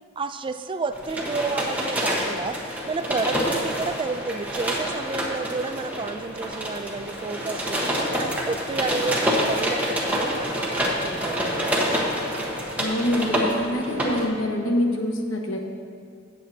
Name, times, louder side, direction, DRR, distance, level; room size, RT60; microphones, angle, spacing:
voice 1, 0.2-11.8 13.7-14.0, right 3 dB, 25° right, 10 dB, 0.3 m, -31 dB
sound 1, 0.9-14.3, equal, 10° right, 1.2 m, -27 dB
voice 2, 12.8-15.6, left 1 dB, 80° left, 2 dB, 1.2 m, -25 dB
16.5 x 7.5 x 2.8 m, 2.2 s
head